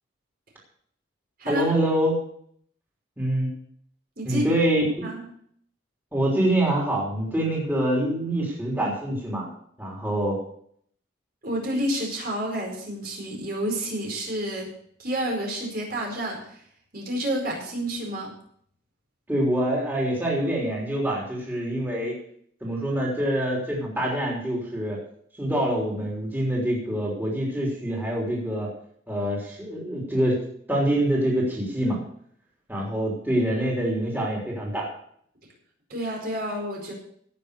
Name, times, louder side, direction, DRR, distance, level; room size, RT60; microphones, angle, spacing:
voice 1, 1.5-2.2 3.2-3.5 4.2-5.1 6.1-9.5 9.8-10.4 19.3-22.1 22.6-25.0 25.4-28.7 29.1-32.0 32.7-34.9, right 1 dB, 10° right, -4 dB, 3.6 m, -25 dB
voice 2, 4.2-4.5 5.0-5.2 11.4-14.7 15.0-16.6 16.9-18.3 33.4-33.5 35.9-36.9, right 1 dB, 50° right, 0 dB, 4.7 m, -29 dB
17.0 x 6.9 x 6.7 m, 0.64 s
head